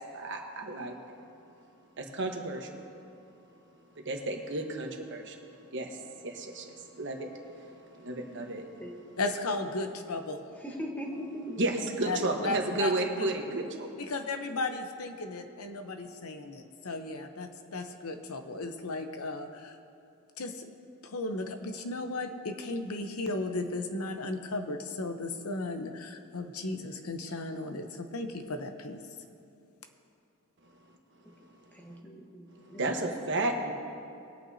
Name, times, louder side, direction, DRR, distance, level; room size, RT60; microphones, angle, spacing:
voice 1, 0.1-1.2 2.0-2.7 3.9-5.4 5.7-8.9 11.6-13.9 32.8-33.7, right 2 dB, 55° right, 2 dB, 1.2 m, -33 dB
voice 2, 9.2-10.4 12.0-12.9 13.2-13.3 14.0-19.8 20.4-20.7 21.0-29.0, left 2 dB, 85° left, 6 dB, 0.8 m, -35 dB
voice 3, 10.6-11.6 31.7-33.0, equal, 10° left, 0 dB, 1.2 m, -40 dB
21.0 x 8.6 x 2.8 m, 2.7 s
head